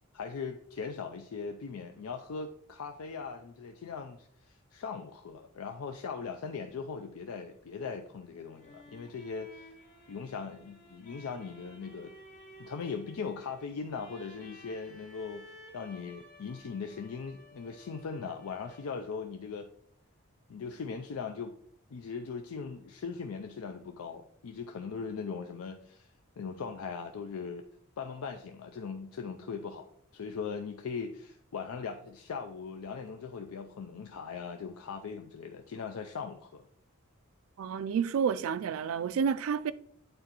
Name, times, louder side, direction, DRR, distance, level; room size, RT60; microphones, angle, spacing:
voice 1, 0.1-9.7 10.1-12.1 12.6-19.7 20.5-21.6 21.9-26.1 26.4-27.6 28.0-36.6, left 5 dB, 85° left, 0.4 m, -39 dB
sound 1, 8.2-19.1, left 1 dB, 40° left, 1.3 m, -54 dB
voice 2, 37.6-39.7, right 7 dB, 70° right, 0.3 m, -30 dB
8.7 x 3.9 x 2.9 m
head